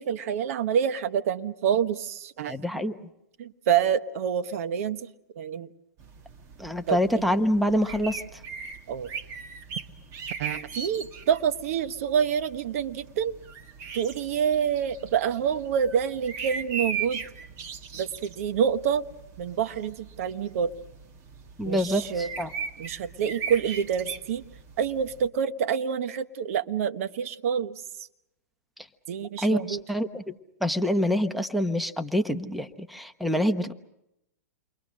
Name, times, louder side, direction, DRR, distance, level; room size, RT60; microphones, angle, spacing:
voice 1, 0.0-2.8 3.4-5.1 5.4-5.7 6.9-7.3 8.9-9.1 10.4-13.3 13.9-17.2 17.9-19.0 19.4-20.7 21.7-22.3 22.8-24.4 24.8-27.8 29.1-29.8, right 8 dB, 60° right, 11 dB, 1.2 m, -27 dB
voice 2, 2.5-3.0 6.6-8.2 21.6-22.5 29.4-30.2 30.6-33.7, equal, ahead, 9 dB, 1.1 m, -26 dB
sound 1, 6.0-25.3, right 6 dB, 35° right, 2.0 m, -39 dB
29.0 x 23.5 x 6.4 m, 0.84 s
hypercardioid pair, 130°, 9 cm